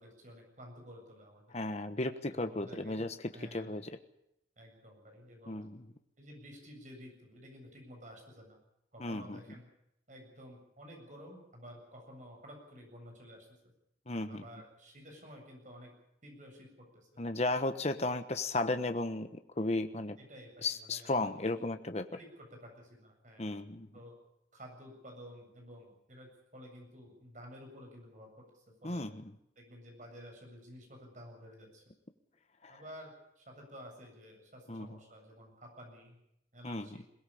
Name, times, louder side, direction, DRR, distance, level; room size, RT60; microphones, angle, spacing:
voice 1, 0.0-1.6 2.3-3.1 3.3-3.8 4.6-5.6 6.2-8.6 8.9-9.7 10.1-13.5 14.3-15.9 16.2-17.1 18.1-18.2 20.2-21.3 21.6-21.7 22.1-23.5 23.9-24.1 24.5-29.1 29.6-31.8 32.7-36.2 36.5-37.0, equal, 45° right, 2 dB, 7.6 m, -52 dB
voice 2, 1.5-3.9 5.5-5.8 9.0-9.4 14.1-14.4 17.2-20.2 20.6-22.0 23.4-23.9 28.8-29.3 32.6-32.8 34.7-34.9 36.6-36.9, left 2 dB, 35° left, 9 dB, 1.2 m, -35 dB
22.0 x 18.0 x 8.6 m, 0.80 s
head